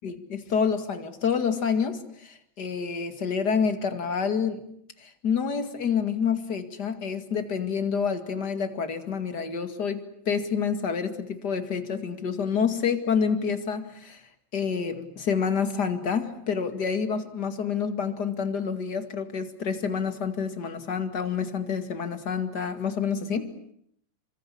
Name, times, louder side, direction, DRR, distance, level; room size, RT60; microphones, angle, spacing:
voice 1, 0.0-4.6 5.0-14.2 14.5-23.5, left 6 dB, 35° left, 8 dB, 2.2 m, -28 dB
28.0 x 24.5 x 8.6 m, 0.72 s
omnidirectional pair, 4.1 m